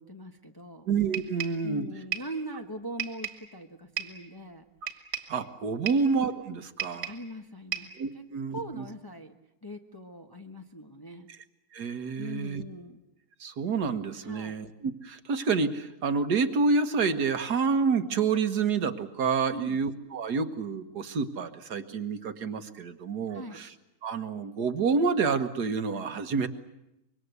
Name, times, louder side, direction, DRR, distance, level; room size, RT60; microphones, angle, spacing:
voice 1, 0.0-0.9 1.6-4.6 7.0-8.2 8.5-9.4 9.6-11.3 12.2-13.0 14.2-14.6 19.5-19.8 23.3-23.6, equal, 15° left, 4 dB, 1.1 m, -41 dB
voice 2, 0.9-1.9 5.3-7.1 8.0-8.8 11.7-12.6 13.4-23.7 24.0-26.5, right 5 dB, 65° right, 9 dB, 1.8 m, -28 dB
sound 1, 1.1-1.7 2.1-2.4 3.0-3.5 4.0-4.2 4.9-5.4 5.9-6.1 6.8-7.3 7.7-8.0, right 9 dB, 40° right, 2.0 m, -35 dB
25.5 x 23.0 x 8.1 m, 0.89 s
omnidirectional pair, 1.9 m